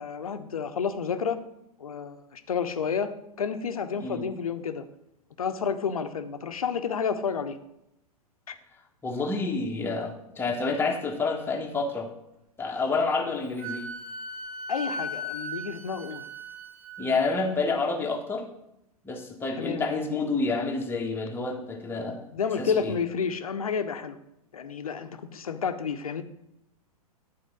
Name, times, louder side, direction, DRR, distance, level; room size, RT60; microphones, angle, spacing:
voice 1, 0.0-1.4 1.8-4.8 5.4-7.6 14.7-16.3 19.6-19.8 22.3-24.2 24.5-26.2, left 6 dB, 65° left, 9 dB, 0.9 m, -30 dB
voice 2, 9.0-12.1 12.6-13.8 17.0-18.5 19.0-22.3 22.6-22.9, left 3 dB, 10° left, 2 dB, 1.3 m, -28 dB
Wind instrument woodwind instrument, 13.6-17.0, equal, 60° right, 2.4 m, -37 dB
11.5 x 4.4 x 6.2 m, 0.84 s
figure-of-eight pair, 100°, 19 cm